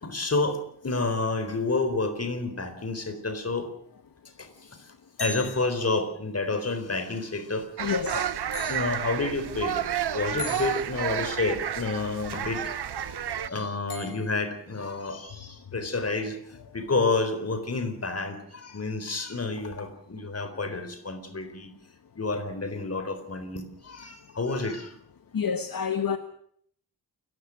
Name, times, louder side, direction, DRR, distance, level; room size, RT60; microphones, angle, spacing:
voice 1, 0.0-3.7 4.4-4.9 5.2-7.7 8.1-8.2 8.7-9.8 10.1-12.6 13.0-21.7 22.2-24.9, left 3 dB, 40° left, 4.1 m, -30 dB
sound 1, 5.2-5.9 8.5-9.1 10.4-10.9 13.9-14.5, left 4 dB, 85° left, 7.0 m, -38 dB
voice 2, 7.8-8.3 25.3-26.2, left 6 dB, 60° left, 1.4 m, -28 dB
sound 2, 7.8-13.5, right 9 dB, 90° right, 1.0 m, -31 dB
28.5 x 15.5 x 6.4 m
wide cardioid pair, 125°, 38 cm